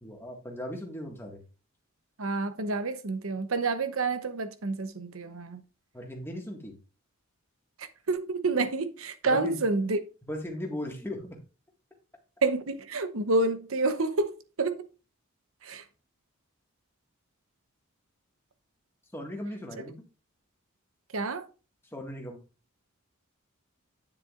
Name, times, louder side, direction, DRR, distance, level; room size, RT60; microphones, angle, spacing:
voice 1, 0.0-1.4 5.9-6.8 9.2-9.6 10.3-11.4 19.1-20.0 21.9-22.4, left 1 dB, 10° left, 1.8 m, -37 dB
voice 2, 2.2-5.6 8.1-10.0 12.4-14.3 14.6-14.8 15.6-15.8 21.1-21.4, right 3 dB, 75° right, 0.9 m, -28 dB
9.3 x 7.4 x 2.5 m
head